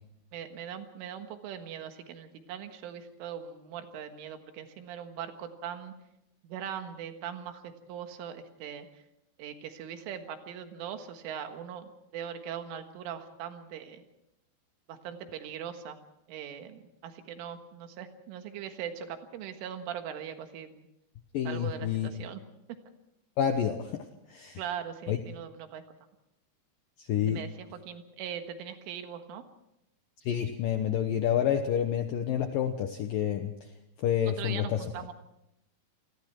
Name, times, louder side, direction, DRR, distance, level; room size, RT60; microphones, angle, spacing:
voice 1, 0.3-5.9 6.4-9.0 9.4-14.0 14.9-16.0 16.3-20.9 21.5-22.4 24.6-25.8 27.2-29.5 34.3-35.1, right 9 dB, 85° right, 7 dB, 4.1 m, -40 dB
voice 2, 21.3-22.1 23.4-24.0 24.3-24.6 25.1-25.2 27.0-27.4 30.3-33.5 34.0-34.8, left 9 dB, 85° left, 7 dB, 2.0 m, -28 dB
28.0 x 21.0 x 4.6 m, 0.82 s
omnidirectional pair, 5.5 m